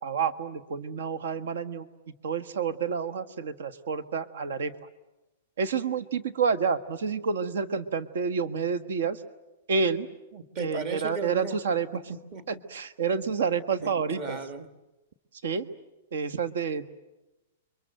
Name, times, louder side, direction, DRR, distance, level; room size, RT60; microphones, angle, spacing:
voice 1, 0.0-1.9 2.2-4.7 5.6-9.2 9.7-10.1 10.6-11.9 12.5-14.4 15.4-15.7 16.1-16.9, right 5 dB, 65° right, 13 dB, 1.4 m, -29 dB
voice 2, 10.3-11.6 11.9-12.6 13.8-14.7, right 4 dB, 25° right, 10 dB, 1.5 m, -36 dB
29.0 x 24.0 x 7.9 m, 1.0 s
supercardioid pair, 180°, 0 cm